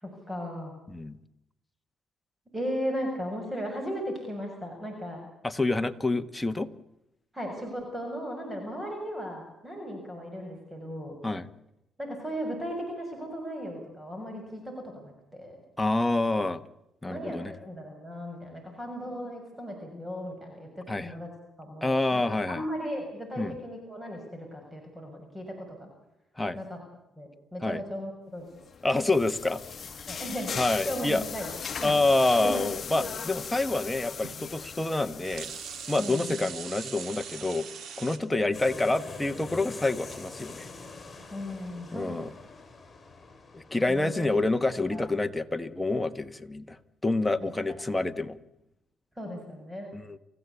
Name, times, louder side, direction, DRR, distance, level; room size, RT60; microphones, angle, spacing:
voice 1, 0.0-0.7 2.5-5.2 7.3-11.2 12.0-15.6 17.0-21.3 21.6-22.2 22.5-25.9 26.5-26.8 27.2-28.5 30.1-30.5 30.9-31.5 31.8-31.9 32.4-32.6 33.0-33.1 36.0-36.4 41.3-42.2 43.9-44.3 44.9-45.0 47.4-47.8 49.2-49.9, equal, 10° right, 3 dB, 6.9 m, -36 dB
voice 2, 5.4-6.7 11.2-11.5 15.8-16.6 17.0-17.5 20.9-21.1 21.8-22.6 23.4-23.6 26.4-26.6 27.6-27.8 28.8-29.6 30.6-31.2 31.8-35.5 35.9-37.7 38.0-40.7 41.9-42.3 43.5-48.4 49.9-50.2, left 2 dB, 10° left, 8 dB, 1.5 m, -27 dB
sound 1, 28.6-36.1, left 6 dB, 45° left, 1.2 m, -38 dB
sound 2, 29.5-30.6 32.4-32.5 33.9-34.0 34.2-34.4 35.0-38.2, right 7 dB, 65° right, 3.0 m, -41 dB
sound 3, 38.5-45.2, left 3 dB, 30° left, 7.2 m, -45 dB
29.0 x 15.5 x 8.5 m, 0.87 s
cardioid pair, 90°, 0 cm